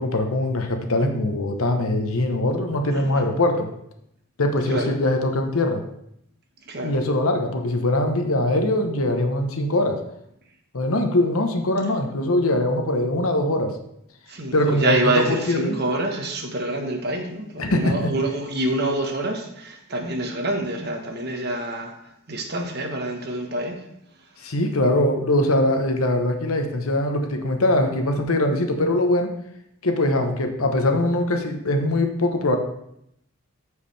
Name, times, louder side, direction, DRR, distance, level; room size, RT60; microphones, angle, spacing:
voice 1, 0.0-3.7 4.4-5.8 6.8-10.0 10.7-13.7 14.5-15.8 17.6-18.1 24.4-29.3 29.8-32.6, left 1 dB, 75° left, 5 dB, 1.0 m, -22 dB
voice 2, 2.9-3.3 4.7-4.9 6.7-7.0 14.3-21.9 22.3-23.8, right 2 dB, 50° right, 3 dB, 1.2 m, -26 dB
14.0 x 4.9 x 3.4 m, 0.76 s
head